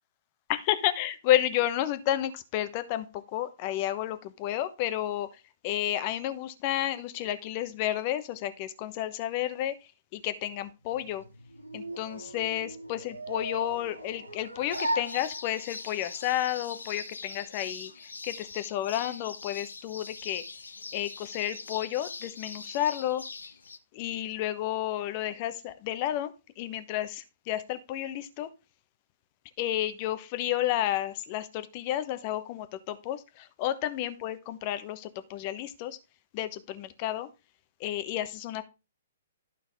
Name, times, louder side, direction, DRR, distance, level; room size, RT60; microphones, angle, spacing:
voice 1, 0.5-9.8 10.1-11.2 11.7-20.4 20.9-23.5 23.9-28.5 29.6-36.0 36.3-37.3 37.8-38.6, left 12 dB, 35° left, 12 dB, 0.9 m, -31 dB
sound 1, 10.8-15.9, right 1 dB, 85° right, 1.4 m, -37 dB
sound 2, 14.7-23.8, left 4 dB, 70° left, 0.7 m, -43 dB
12.0 x 5.9 x 3.5 m, 0.28 s
figure-of-eight pair, 120°, 0 cm